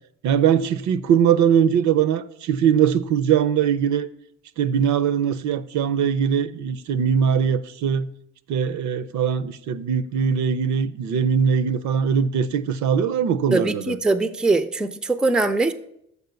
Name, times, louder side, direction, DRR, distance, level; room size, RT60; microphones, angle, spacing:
voice 1, 0.2-4.1 4.6-8.1 8.5-14.0, right 8 dB, 70° right, 0.5 m, -21 dB
voice 2, 13.5-15.7, right 3 dB, 5° right, 0.4 m, -21 dB
6.8 x 4.5 x 6.8 m
cardioid pair, 90°, 30 cm